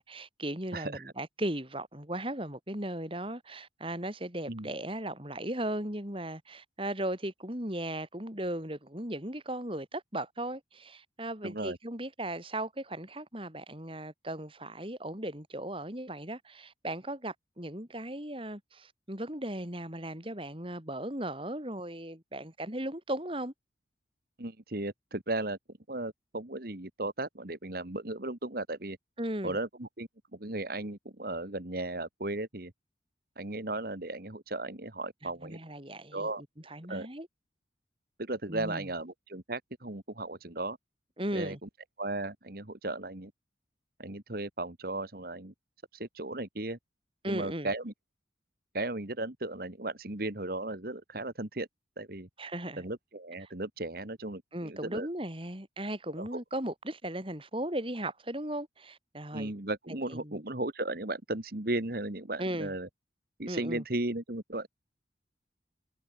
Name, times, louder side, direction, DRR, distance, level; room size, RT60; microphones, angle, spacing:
voice 1, 0.0-23.5 29.2-29.6 35.4-36.3 36.7-37.3 38.5-38.9 41.2-41.6 47.2-47.7 52.4-52.8 54.5-59.5 59.9-60.4 62.4-62.7 63.5-63.8, right 1 dB, 30° right, 4.2 m, -37 dB
voice 2, 0.7-1.1 4.5-4.7 11.4-11.8 24.4-25.6 25.9-29.0 29.4-32.7 33.4-35.6 36.1-36.4 36.9-37.1 38.2-40.8 41.3-41.7 42.0-43.3 44.0-45.5 45.9-46.8 47.3-47.9 48.7-51.7 52.0-52.3 52.8-55.1 56.2-56.4 59.3-62.9 63.4-64.7, right 2 dB, 50° right, 1.9 m, -36 dB
head